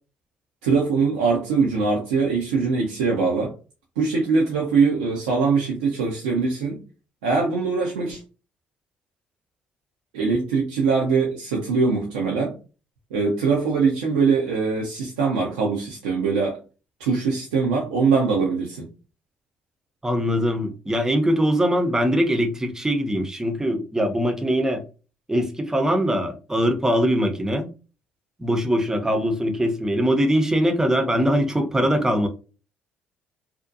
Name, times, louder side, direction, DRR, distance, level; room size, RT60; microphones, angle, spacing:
voice 1, 0.6-3.5 4.0-6.8 7.2-8.2 10.1-12.5 13.1-16.6 17.0-18.9, right 4 dB, 85° right, 0.5 m, -22 dB
voice 2, 20.0-24.8 25.3-27.7 28.4-32.3, equal, 10° right, 0.6 m, -22 dB
2.5 x 2.1 x 2.6 m
hypercardioid pair, 55°, 5 cm